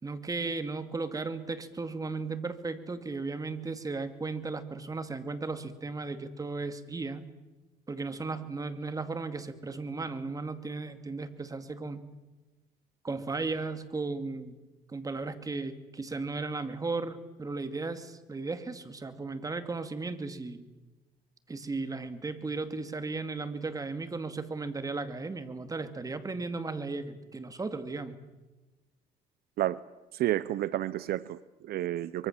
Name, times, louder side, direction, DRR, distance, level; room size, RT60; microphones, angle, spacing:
voice 1, 0.0-7.3 7.9-12.0 13.0-14.6 14.9-20.7 21.5-28.2, right 3 dB, 20° right, 10 dB, 2.3 m, -35 dB
voice 2, 30.1-32.3, right 14 dB, 65° right, 17 dB, 0.7 m, -31 dB
24.0 x 23.5 x 7.3 m, 1.1 s
cardioid pair, 110°, 17 cm